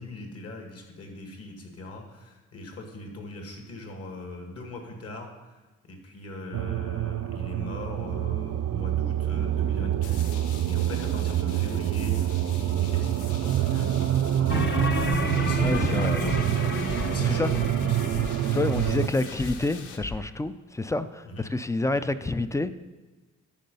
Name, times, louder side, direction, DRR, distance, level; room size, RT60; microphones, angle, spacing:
voice 1, 0.0-18.1 18.5-19.3 21.2-21.5 21.9-22.1, left 2 dB, 55° left, 3 dB, 2.0 m, -41 dB
sound 1, 6.5-19.1, right 12 dB, 55° right, 0.4 m, -26 dB
sound 2, 10.0-20.0, left 7 dB, 85° left, 0.9 m, -46 dB
sound 3, 14.5-20.2, left 3 dB, 35° left, 1.0 m, -32 dB
voice 2, 15.6-16.2 17.2-17.5 18.5-22.7, left 2 dB, 10° left, 13 dB, 0.3 m, -28 dB
11.5 x 4.7 x 5.4 m, 1.2 s
cardioid pair, 90°, 30 cm